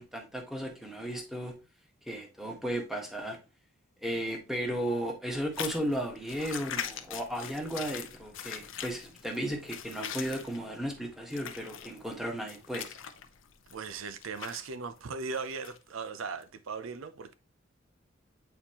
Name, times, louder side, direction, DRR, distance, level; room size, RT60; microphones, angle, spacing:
voice 1, 0.0-1.5 2.0-3.4 4.0-13.0, equal, ahead, 1.4 m, -35 dB
sound 1, 5.5-14.7 15.3-15.8 16.4-16.5, left 9 dB, 70° left, 0.7 m, -42 dB
voice 2, 13.7-17.3, right 5 dB, 85° right, 0.5 m, -38 dB
8.2 x 4.3 x 2.9 m
head